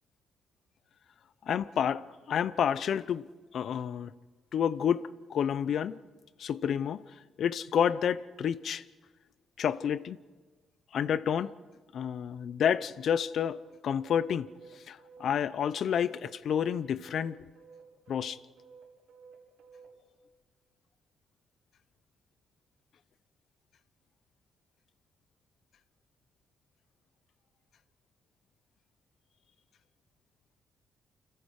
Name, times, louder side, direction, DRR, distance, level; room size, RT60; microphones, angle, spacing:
voice 1, 1.4-4.1 4.5-6.0 6.4-7.0 7.4-8.8 9.6-10.2 10.9-11.5 11.9-14.5 14.8-17.5 18.1-18.4, left 8 dB, 65° left, 0.7 m, -30 dB
sound 1, 12.9-19.9, right 5 dB, 90° right, 6.2 m, -54 dB
28.5 x 26.5 x 4.9 m
cardioid pair, 90°, 0 cm